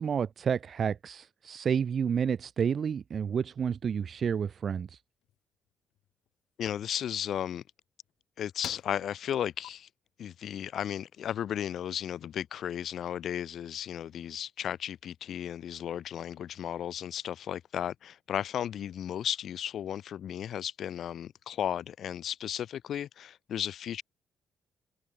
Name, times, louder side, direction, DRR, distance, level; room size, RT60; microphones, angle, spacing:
voice 1, 0.0-4.9, right 7 dB, 45° right, 0.6 m, -30 dB
sound 1, 5.2-5.4 6.0-6.3 6.7-6.9 8.1-8.2 8.6-9.1 9.6-9.7, left 13 dB, 80° left, 4.1 m, -45 dB
voice 2, 6.6-7.6 8.4-9.9 10.2-24.0, left 10 dB, 60° left, 1.6 m, -34 dB
cardioid pair, 130°, 0 cm